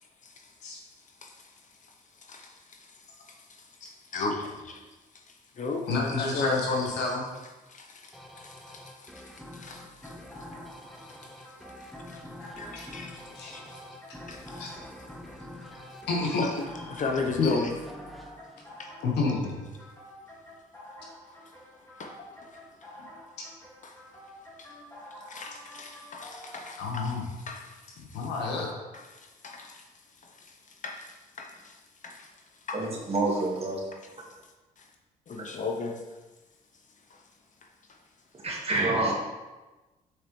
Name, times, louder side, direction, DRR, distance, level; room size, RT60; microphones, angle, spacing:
voice 1, 1.2-1.5 1.8-1.9 2.2-4.8 5.3-6.6 7.0-7.1 7.7-10.2 11.1-11.5 12.1-12.2 12.5-13.9 14.3-14.6 16.3-17.7 18.8-18.9 22.0-22.2 22.4-22.9 23.8-23.9 24.6-24.7 25.3-27.2 27.5-28.3 28.9-29.9 30.2-32.3 32.7-32.8 34.8-34.9 35.3-36.0 37.1-37.2 37.9-38.0, left 4 dB, 45° left, 3 dB, 0.9 m, -37 dB
voice 2, 5.9-7.2 12.4-12.5 12.7-12.9 13.3-13.5 14.6-14.7 16.1-16.4 17.4-17.5 19.0-19.6 26.8-27.2 28.1-28.7, left 3 dB, 80° left, -1 dB, 1.4 m, -29 dB
sound 1, 8.1-19.4, left 1 dB, ahead, 0.8 m, -46 dB
sound 2, 10.0-26.7, left 1 dB, 15° left, 2.0 m, -49 dB
voice 3, 32.7-33.8 35.4-35.5 38.3-39.1, right 2 dB, 35° right, -3 dB, 2.0 m, -27 dB
6.5 x 5.1 x 3.2 m, 1.1 s
supercardioid pair, 65°, 17 cm